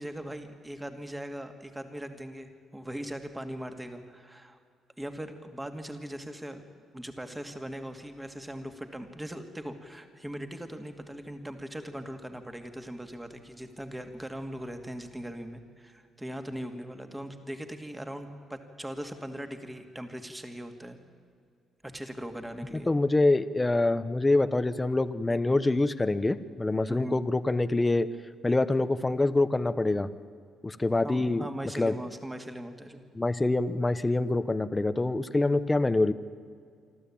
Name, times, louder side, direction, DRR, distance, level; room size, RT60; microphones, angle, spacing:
voice 1, 0.0-4.6 5.0-6.6 6.9-21.0 21.8-22.9 26.9-27.2 31.0-33.0, right 1 dB, 10° right, 6 dB, 2.2 m, -40 dB
voice 2, 22.9-28.1 28.4-30.1 30.6-31.5 31.8-31.9 33.1-36.1, left 2 dB, 15° left, 13 dB, 0.9 m, -25 dB
27.5 x 12.5 x 8.8 m, 2.2 s
cardioid pair, 90°, 0 cm